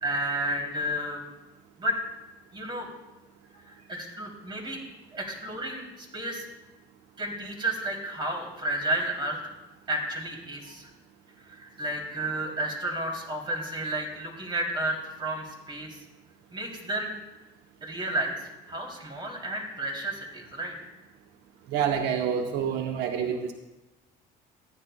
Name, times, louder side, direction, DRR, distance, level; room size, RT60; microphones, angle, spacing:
voice 1, 0.0-1.2 1.8-2.0 2.5-2.9 3.7-4.8 5.1-6.4 7.2-9.4 9.9-10.9 11.4-16.0 16.5-17.1 17.8-18.4 18.7-20.7, right 1 dB, 30° right, -1 dB, 2.8 m, -32 dB
voice 2, 21.7-23.5, right 8 dB, 85° right, 4 dB, 0.8 m, -27 dB
14.5 x 10.5 x 2.2 m, 1.0 s
cardioid pair, 110°, 17 cm